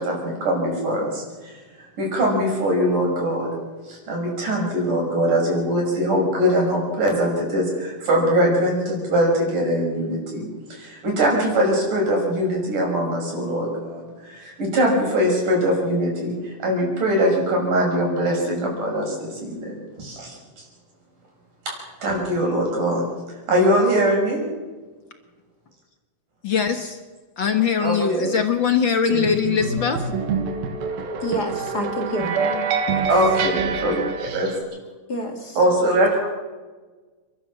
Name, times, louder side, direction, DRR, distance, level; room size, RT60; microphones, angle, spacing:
voice 1, 0.0-3.6 3.9-20.6 21.7-21.8 22.0-23.1 23.5-24.5 27.8-28.3 33.1-33.9 34.3-34.5 35.6-36.3, equal, 60° right, 0 dB, 7.6 m, -22 dB
voice 2, 26.4-27.0 27.4-30.0, left 7 dB, 65° left, 7 dB, 1.1 m, -21 dB
sound 1, 29.1-34.6, right 5 dB, 85° right, 3.6 m, -26 dB
voice 3, 31.2-33.1 35.1-35.6, equal, 30° left, 4 dB, 2.4 m, -29 dB
29.5 x 13.0 x 7.3 m, 1.3 s
omnidirectional pair, 4.2 m